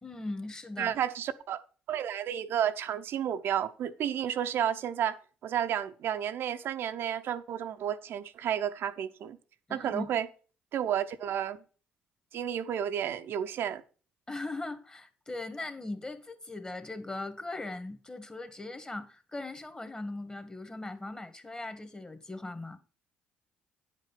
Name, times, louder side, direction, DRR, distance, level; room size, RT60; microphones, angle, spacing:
voice 1, 0.0-1.0 9.7-10.1 14.3-22.8, left 2 dB, 20° left, 1.8 m, -39 dB
voice 2, 0.8-1.6 1.9-5.2 5.4-9.4 9.7-10.3 10.7-11.6 12.3-13.8, right 9 dB, 65° right, 0.7 m, -31 dB
9.5 x 5.3 x 5.6 m
hypercardioid pair, 55°, 4 cm